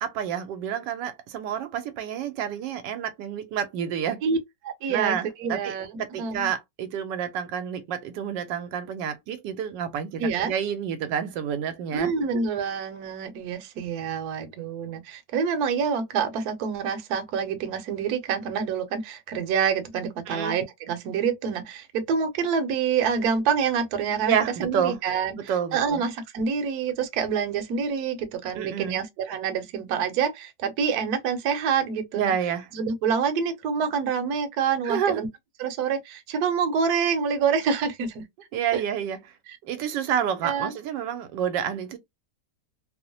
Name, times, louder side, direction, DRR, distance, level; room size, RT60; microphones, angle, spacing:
voice 1, 0.0-4.2 4.9-12.1 20.3-20.6 24.3-25.0 25.4-26.0 28.5-29.0 32.1-32.7 34.8-35.2 38.5-39.2 39.6-42.0, right 8 dB, 90° right, 1.2 m, -29 dB
voice 2, 4.6-5.9 6.2-6.5 10.2-10.5 11.9-24.3 24.6-25.4 25.7-32.3 32.7-35.3 35.6-38.2 38.7-38.8 40.4-40.7, right 6 dB, 70° right, 1.1 m, -27 dB
3.0 x 2.0 x 2.6 m
omnidirectional pair, 1.9 m